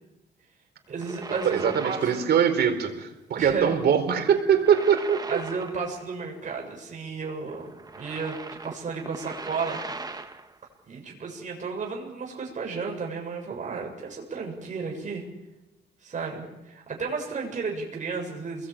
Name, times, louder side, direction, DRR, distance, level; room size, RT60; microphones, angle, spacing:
sound 1, 0.9-2.5 2.8-3.0 4.3-6.3 6.5-6.6 7.5-10.6, right 3 dB, 20° right, 1.9 m, -40 dB
voice 1, 0.9-2.1 3.4-3.8 5.3-9.8 10.1-10.2 10.9-15.3 16.0-18.7, right 4 dB, 45° right, 0 dB, 7.1 m, -33 dB
voice 2, 1.4-5.4, right 8 dB, 70° right, 6 dB, 4.3 m, -22 dB
29.0 x 21.5 x 8.9 m, 1.0 s
cardioid pair, 105°, 18 cm